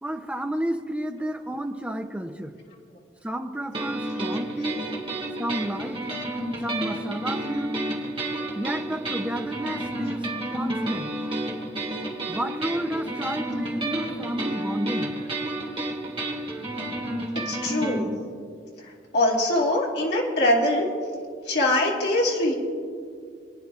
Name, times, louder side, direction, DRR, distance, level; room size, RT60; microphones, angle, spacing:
voice 1, 0.0-2.5 3.2-4.8 5.4-6.0 6.6-7.7 8.6-11.1 12.3-15.1, right 1 dB, 5° right, 4 dB, 0.6 m, -31 dB
sound 1, 3.7-18.0, right 1 dB, 30° right, 1.8 m, -31 dB
voice 2, 17.5-18.1 19.1-20.9 21.5-22.5, left 1 dB, 65° left, -4 dB, 2.5 m, -23 dB
28.5 x 10.0 x 2.5 m, 2.2 s
head